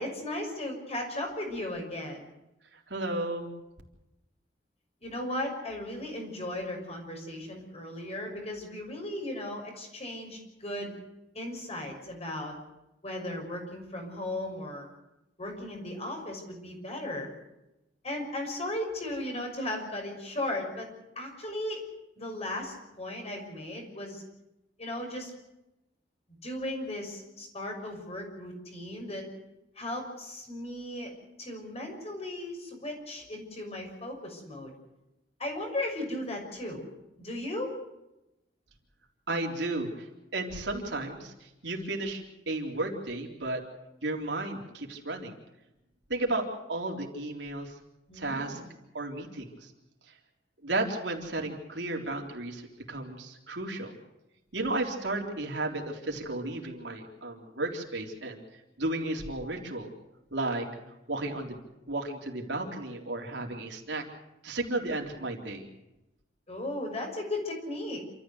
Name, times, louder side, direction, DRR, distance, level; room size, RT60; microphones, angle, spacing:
voice 1, 0.0-2.2 5.0-11.0 11.3-12.5 13.0-14.9 15.4-17.3 18.0-20.9 21.2-21.8 22.2-24.2 24.8-25.3 26.4-29.3 29.8-31.1 31.4-34.7 35.4-36.8 37.2-37.8 48.1-48.7 66.5-68.0, left 1 dB, 35° left, 2 dB, 6.2 m, -36 dB
voice 2, 2.9-3.5 39.3-40.1 40.3-41.3 41.6-43.6 44.0-45.3 46.1-47.7 48.1-48.6 48.9-49.5 50.6-53.9 54.5-58.4 58.8-59.9 60.3-60.7 61.1-61.6 61.9-64.0 64.4-65.7, right 2 dB, 80° right, 1 dB, 3.8 m, -33 dB
28.0 x 14.0 x 8.0 m, 0.92 s
head